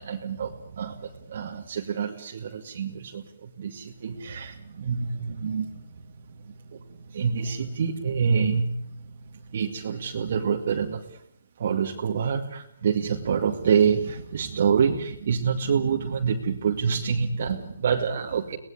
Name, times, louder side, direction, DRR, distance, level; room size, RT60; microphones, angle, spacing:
voice 1, 0.0-6.8 7.1-11.2 11.6-18.6, right 6 dB, 55° right, 1 dB, 2.3 m, -27 dB
23.0 x 19.0 x 9.8 m, 0.72 s
hypercardioid pair, 155°, 0 cm